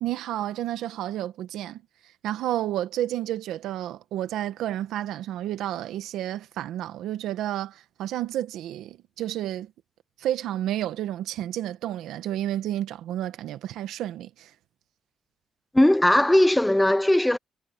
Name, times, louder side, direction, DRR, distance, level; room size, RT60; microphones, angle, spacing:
voice 1, 0.0-1.8 2.2-9.7 10.2-14.5, right 12 dB, 85° right, 1.5 m, -31 dB
voice 2, 15.7-17.4, left 1 dB, 5° left, 0.5 m, -19 dB
cardioid pair, 90°, 0 cm